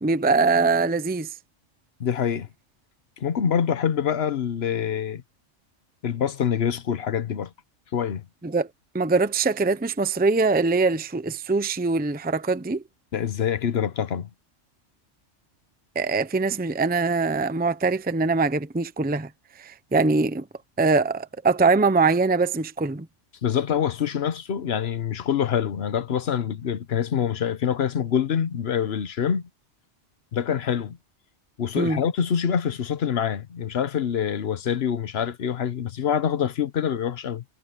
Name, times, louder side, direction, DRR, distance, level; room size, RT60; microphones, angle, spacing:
voice 1, 0.0-1.3 8.4-8.7 8.9-12.8 16.0-19.3 19.6-20.4 20.8-23.1 31.8-32.0, right 3 dB, 10° right, 0.6 m, -22 dB
voice 2, 2.0-2.5 3.2-5.2 6.0-7.5 7.9-8.2 13.1-14.3 23.4-29.5 30.3-31.0 31.6-37.4, left 8 dB, 60° left, 1.2 m, -25 dB
omnidirectional pair, 1.3 m